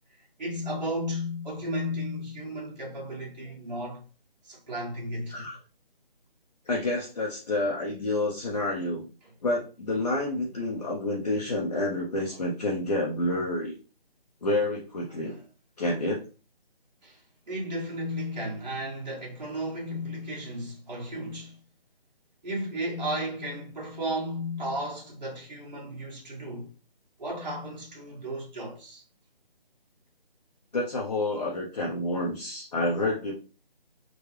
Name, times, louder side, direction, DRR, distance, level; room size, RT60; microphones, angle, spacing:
voice 1, 0.4-4.0 4.4-5.4 9.2-9.3 12.3-12.4 15.1-15.4 17.0-17.2 17.5-21.6 22.4-26.7 27.2-29.0, equal, 45° right, 1.5 m, -34 dB
voice 2, 6.7-9.1 9.4-13.7 14.4-15.3 15.8-16.2 30.7-33.3, left 2 dB, 40° left, 0.7 m, -29 dB
3.8 x 2.2 x 3.2 m
figure-of-eight pair, 165°, 30 cm